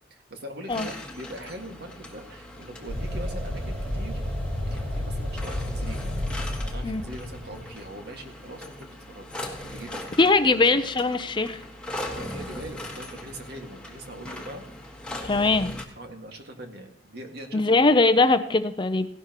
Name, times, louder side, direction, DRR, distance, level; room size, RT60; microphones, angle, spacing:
voice 1, 0.3-6.0 6.6-9.3 9.6-10.7 12.1-14.6 15.3-15.6 16.0-17.9, right 1 dB, 60° right, 4 dB, 1.9 m, -42 dB
sound 1, 0.7-15.8, left 1 dB, 5° left, 1.5 m, -40 dB
sound 2, 2.9-8.0, left 1 dB, 35° right, 5.6 m, -31 dB
voice 2, 10.2-11.6 15.2-15.7 17.5-19.1, left 3 dB, 25° left, 10 dB, 0.6 m, -21 dB
17.0 x 11.5 x 3.0 m, 0.72 s
head